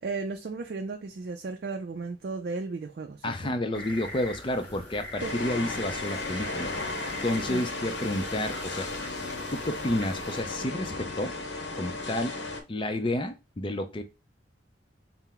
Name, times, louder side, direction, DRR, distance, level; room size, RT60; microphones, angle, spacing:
voice 1, 0.0-3.5 5.2-5.3 7.5-7.6, right 4 dB, 55° right, 0.4 m, -35 dB
voice 2, 3.2-6.7 7.2-8.9 9.5-11.3 11.8-12.4 12.7-14.0, left 1 dB, 25° left, 0.5 m, -30 dB
sound 1, 3.7-10.4, left 1 dB, 10° left, 1.2 m, -42 dB
sound 2, 5.2-12.6, left 2 dB, 65° left, 0.8 m, -35 dB
4.3 x 2.0 x 3.7 m
head